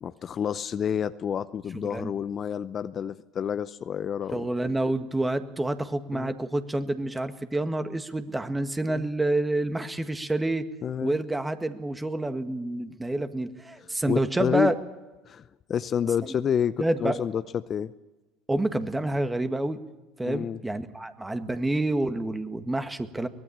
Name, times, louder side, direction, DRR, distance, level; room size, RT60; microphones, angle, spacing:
voice 1, 0.0-4.5 6.1-6.3 8.9-9.1 10.8-11.2 14.1-14.7 15.3-17.9 20.2-20.6, left 8 dB, 40° left, 13 dB, 0.7 m, -29 dB
voice 2, 1.7-2.1 4.3-10.7 11.0-14.8 16.8-17.2 18.5-19.8 20.2-23.3, right 2 dB, 10° right, 9 dB, 1.8 m, -28 dB
23.5 x 19.0 x 8.8 m, 1.1 s
hypercardioid pair, 75°, 0 cm